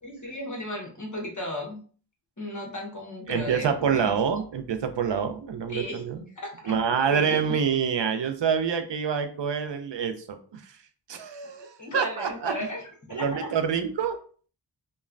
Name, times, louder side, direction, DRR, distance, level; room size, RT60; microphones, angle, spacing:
voice 1, 0.0-1.8 2.4-4.1 5.7-6.0 6.3-6.8 7.1-7.5 11.6-12.8 13.1-13.5, left 1 dB, 35° left, 0 dB, 1.0 m, -35 dB
voice 2, 3.3-6.2 6.7-10.7 11.1-12.6 13.1-14.2, right 7 dB, 60° right, 8 dB, 0.5 m, -27 dB
3.1 x 2.2 x 2.4 m, 0.42 s
wide cardioid pair, 50°, 49 cm